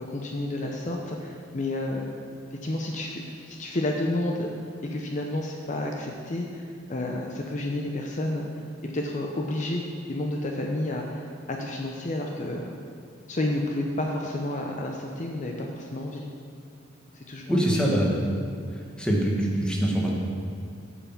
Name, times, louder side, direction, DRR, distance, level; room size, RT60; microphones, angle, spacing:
voice 1, 0.0-2.1 2.5-4.5 4.8-8.5 8.8-9.8 10.1-12.7 13.3-16.2 17.1-18.0, left 1 dB, 40° left, 1 dB, 0.7 m, -30 dB
voice 2, 17.5-18.2 19.0-20.1, right 1 dB, 5° left, -3 dB, 1.3 m, -23 dB
8.2 x 5.8 x 7.2 m, 2.3 s
head